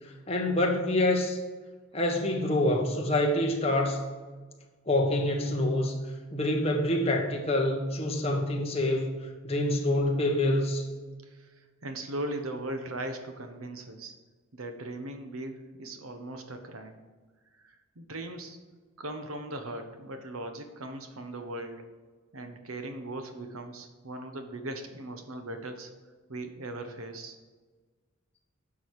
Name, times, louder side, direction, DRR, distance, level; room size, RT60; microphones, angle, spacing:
voice 1, 0.3-1.4 1.9-4.0 4.9-5.9 6.3-9.2 9.4-10.8, left 1 dB, 30° left, 1 dB, 1.3 m, -26 dB
voice 2, 11.2-14.1 14.5-17.0 17.6-18.6 19.0-21.9 22.3-25.9 26.3-27.4, right 1 dB, 90° right, 6 dB, 1.2 m, -39 dB
10.0 x 6.3 x 4.9 m, 1.4 s
head